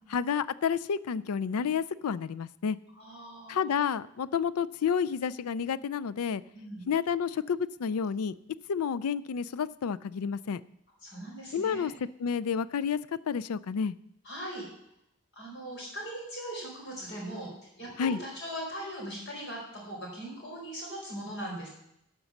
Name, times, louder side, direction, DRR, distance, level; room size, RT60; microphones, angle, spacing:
voice 1, 0.1-2.8 3.5-6.4 6.9-8.4 8.7-10.6 11.5-11.9 12.2-13.0 13.3-13.9 18.0-18.2, left 7 dB, 80° left, 18 dB, 0.4 m, -30 dB
voice 2, 3.0-3.6 6.5-6.8 11.0-11.9 14.2-14.6 15.3-17.5 17.8-21.7, right 1 dB, 50° left, -2 dB, 4.3 m, -40 dB
12.0 x 5.3 x 7.1 m, 0.78 s
head